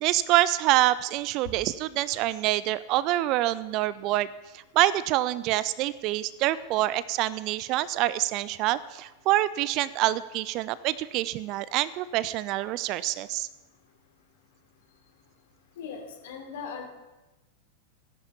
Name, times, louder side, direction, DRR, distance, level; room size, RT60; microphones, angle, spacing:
voice 1, 0.0-4.3 4.7-13.5, right 15 dB, 40° right, 18 dB, 0.5 m, -26 dB
voice 2, 15.8-16.8, left 6 dB, 55° left, 3 dB, 3.2 m, -39 dB
16.0 x 11.0 x 7.0 m, 1.0 s
figure-of-eight pair, 90°, 0 cm